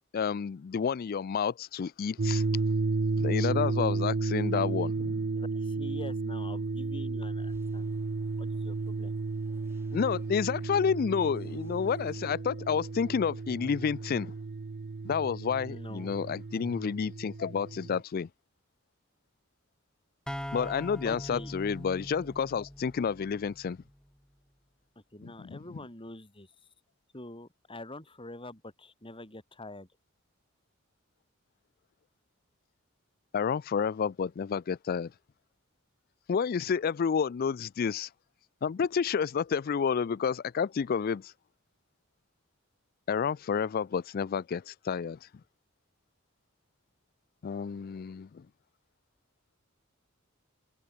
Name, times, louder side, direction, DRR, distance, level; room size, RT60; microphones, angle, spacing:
voice 1, 0.1-2.5 3.2-5.2 9.9-14.3 15.0-18.3 20.5-23.8 25.2-25.8 33.3-35.1 36.3-38.1 38.6-41.3 43.1-45.2 47.4-48.5, left 6 dB, 45° left, 0.3 m, -30 dB
sound 1, 2.2-18.0, right 3 dB, 50° right, 0.6 m, -33 dB
voice 2, 5.3-7.9 8.4-9.1 15.6-16.1 21.0-21.5 25.1-26.5 27.1-29.9, left 1 dB, 25° left, 4.2 m, -45 dB
sound 2, 7.4-12.4, right 1 dB, 10° right, 5.1 m, -64 dB
sound 3, 20.3-23.9, equal, 5° left, 2.6 m, -42 dB
head